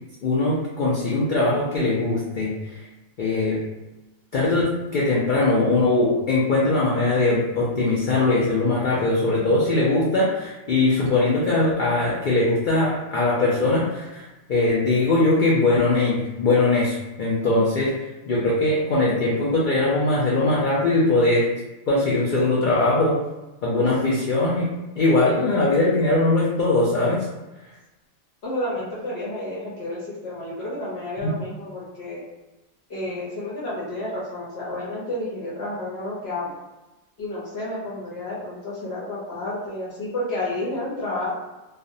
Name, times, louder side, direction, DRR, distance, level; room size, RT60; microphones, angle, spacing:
voice 1, 0.2-2.5 3.2-3.6 4.3-17.9 18.3-21.5 21.9-23.2 23.6-24.7 25.0-27.2, left 2 dB, 85° left, -5 dB, 0.4 m, -21 dB
voice 2, 9.3-9.6 17.4-17.7 23.7-24.2 28.4-32.2 32.9-36.6 37.2-41.3, left 1 dB, 60° left, -6 dB, 0.8 m, -31 dB
2.4 x 2.0 x 2.6 m, 1.1 s
omnidirectional pair, 1.4 m